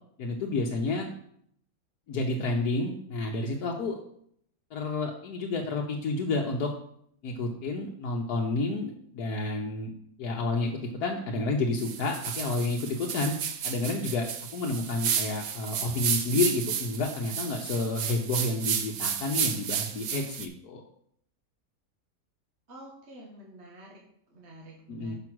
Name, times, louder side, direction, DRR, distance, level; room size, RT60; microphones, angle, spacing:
voice 1, 0.2-1.1 2.1-4.0 4.7-6.7 7.2-9.9 10.2-14.3 14.5-20.8 24.9-25.2, left 3 dB, 80° left, 0 dB, 1.4 m, -30 dB
sound 1, 11.8-20.5, right 8 dB, 70° right, 1.1 m, -32 dB
voice 2, 22.7-25.2, right 1 dB, 45° right, -2 dB, 1.7 m, -49 dB
6.2 x 5.9 x 6.1 m, 0.67 s
omnidirectional pair, 1.7 m